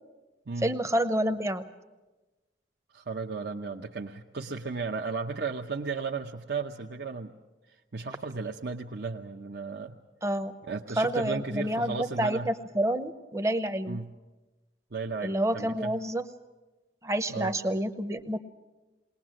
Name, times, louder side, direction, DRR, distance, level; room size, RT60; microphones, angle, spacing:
voice 1, 0.6-1.6 10.2-10.5 11.0-14.0 15.2-16.2 17.0-18.4, right 1 dB, 15° right, 9 dB, 0.8 m, -28 dB
voice 2, 2.9-7.3 7.7-10.0 10.7-12.5 13.9-14.1 14.9-15.9 17.3-17.5, right 4 dB, 55° right, 1 dB, 0.8 m, -35 dB
21.0 x 19.5 x 7.6 m, 1.2 s
head